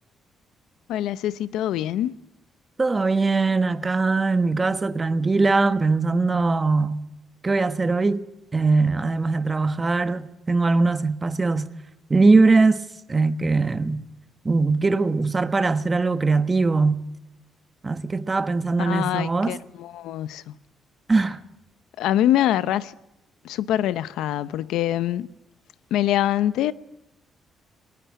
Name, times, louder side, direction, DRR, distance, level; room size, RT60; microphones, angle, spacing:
voice 1, 0.9-2.2 18.8-20.5 22.0-22.9 23.4-25.3 25.9-26.7, left 12 dB, 90° left, 0.7 m, -24 dB
voice 2, 2.8-7.0 7.4-8.3 8.5-11.7 12.1-12.8 13.1-14.0 14.4-17.0 17.8-19.6 21.1-21.4, right 3 dB, 25° right, 1.2 m, -21 dB
21.5 x 18.5 x 9.3 m
cardioid pair, 90°, 0 cm